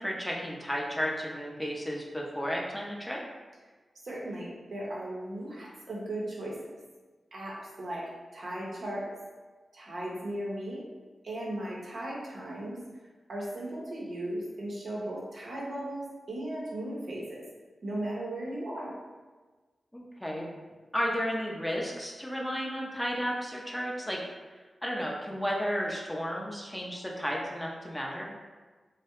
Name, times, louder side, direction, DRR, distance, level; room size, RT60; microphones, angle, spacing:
voice 1, 0.0-3.2 19.9-20.5 20.9-24.2 24.8-28.4, equal, 5° left, -2 dB, 0.4 m, -33 dB
voice 2, 4.0-6.6 7.3-8.0 8.3-9.0 9.7-10.8 11.2-12.8 13.3-17.4 17.8-18.9, right 1 dB, 70° right, -5 dB, 0.6 m, -36 dB
2.2 x 2.0 x 2.9 m, 1.3 s
cardioid pair, 50°, 0 cm